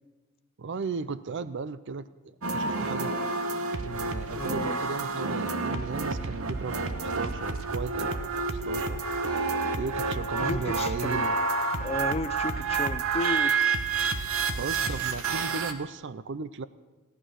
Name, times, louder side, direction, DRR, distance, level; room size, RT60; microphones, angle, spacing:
voice 1, 0.6-3.1 3.8-9.0 9.8-11.4 14.4-16.7, right 4 dB, 55° right, 16 dB, 0.5 m, -36 dB
sound 1, 2.4-15.7, right 4 dB, 75° right, 1.0 m, -29 dB
voice 2, 4.3-4.8 10.4-11.4 11.8-13.6 14.8-15.0, left 2 dB, 30° left, 13 dB, 0.5 m, -34 dB
17.0 x 11.5 x 6.3 m, 1.2 s
head